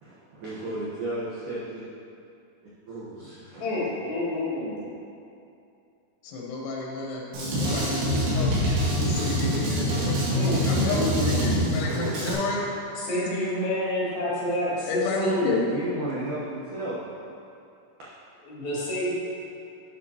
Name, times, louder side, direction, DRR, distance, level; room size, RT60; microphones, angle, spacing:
voice 1, 0.0-1.8 2.9-3.7 15.4-17.0, right 1 dB, 70° right, -9 dB, 1.9 m, -34 dB
voice 2, 3.6-4.8 10.3-11.7 13.0-15.6 18.5-19.1, left 1 dB, 55° left, -11 dB, 3.7 m, -29 dB
voice 3, 6.2-7.2 7.6-8.5 9.0-10.1 10.6-12.6 14.9-15.6, left 3 dB, 85° left, -4 dB, 3.4 m, -30 dB
Drum kit, 7.3-12.3, equal, 85° right, 4.2 m, -25 dB
11.5 x 7.4 x 2.9 m, 2.6 s
omnidirectional pair, 5.3 m